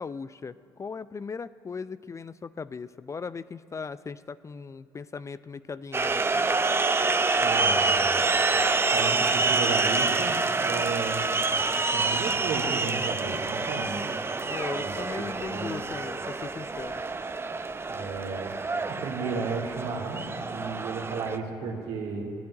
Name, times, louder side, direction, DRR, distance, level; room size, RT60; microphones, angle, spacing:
voice 1, 0.0-6.5 14.4-17.0, left 5 dB, 30° left, 15 dB, 0.4 m, -38 dB
sound 1, 5.9-21.4, right 3 dB, 20° right, 0.7 m, -27 dB
voice 2, 7.4-8.2 8.9-11.2 11.9-14.0 14.8-15.8 17.9-18.5 18.8-22.2, right 4 dB, 65° right, -1 dB, 2.9 m, -33 dB
15.5 x 9.5 x 9.9 m, 2.5 s
hypercardioid pair, 50°, 11 cm